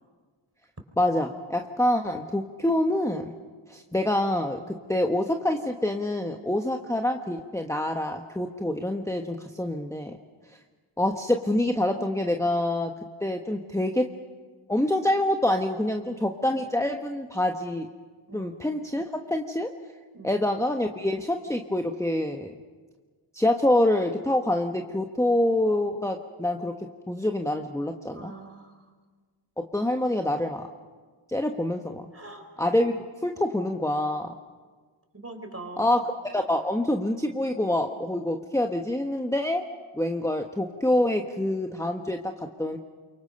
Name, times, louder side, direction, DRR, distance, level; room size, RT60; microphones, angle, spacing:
voice 1, 1.0-3.3 3.7-10.2 11.0-12.9 13.2-14.0 14.7-17.9 18.3-19.7 20.2-22.5 23.3-26.7 27.1-28.3 29.6-30.7 31.3-32.0 32.6-33.0 33.2-34.3 35.8-36.0 36.3-39.6 39.9-42.8, left 1 dB, 5° left, 3 dB, 1.2 m, -26 dB
voice 2, 28.1-28.8 32.1-32.5 35.1-35.9, right 2 dB, 30° right, 5 dB, 4.0 m, -42 dB
28.0 x 24.0 x 5.4 m, 1.5 s
wide cardioid pair, 60°, 49 cm